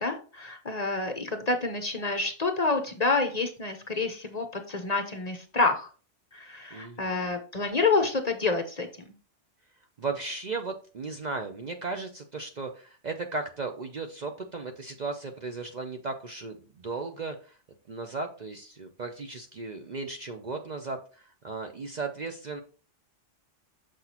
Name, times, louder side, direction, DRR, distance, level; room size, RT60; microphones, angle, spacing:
voice 1, 0.0-5.9 6.3-8.9, left 3 dB, 40° left, 6 dB, 0.8 m, -28 dB
voice 2, 6.7-7.3 10.0-17.6 17.9-22.6, right 3 dB, 45° right, 5 dB, 0.6 m, -36 dB
6.6 x 5.9 x 2.9 m, 0.38 s
omnidirectional pair, 1.2 m